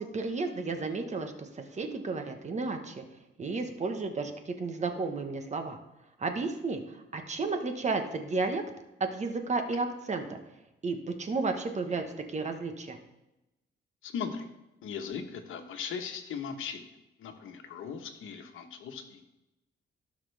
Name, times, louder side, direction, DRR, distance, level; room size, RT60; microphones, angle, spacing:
voice 1, 0.0-3.0 3.4-5.8 6.2-8.6 9.0-10.4 10.8-13.0, right 3 dB, 35° right, 5 dB, 1.3 m, -33 dB
voice 2, 14.0-14.5 14.8-16.9 17.2-19.2, left 6 dB, 90° left, 6 dB, 1.2 m, -38 dB
16.5 x 5.9 x 3.4 m, 0.95 s
cardioid pair, 120°, 20 cm